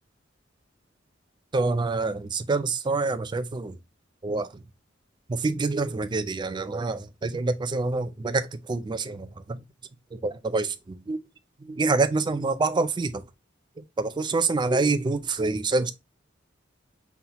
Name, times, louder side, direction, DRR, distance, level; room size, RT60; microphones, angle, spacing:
voice 1, 1.5-3.8 4.2-4.5 5.3-9.6 10.1-11.2 11.7-13.2 14.0-15.9, right 3 dB, 25° right, 0.4 m, -26 dB
5.6 x 2.1 x 2.8 m
head